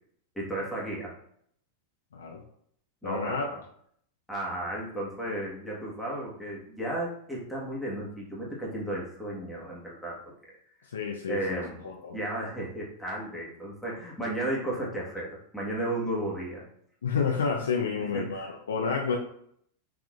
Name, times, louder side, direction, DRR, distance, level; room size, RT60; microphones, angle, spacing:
voice 1, 0.3-1.1 3.0-3.4 4.3-10.2 10.5-10.6 11.3-11.9 12.1-16.6 18.0-18.5, right 1 dB, 5° left, -5 dB, 1.4 m, -34 dB
voice 2, 3.0-3.5 10.9-12.2 17.0-19.2, left 5 dB, 85° left, 0 dB, 0.5 m, -30 dB
3.8 x 3.4 x 2.4 m, 0.68 s
hypercardioid pair, 105°, 0 cm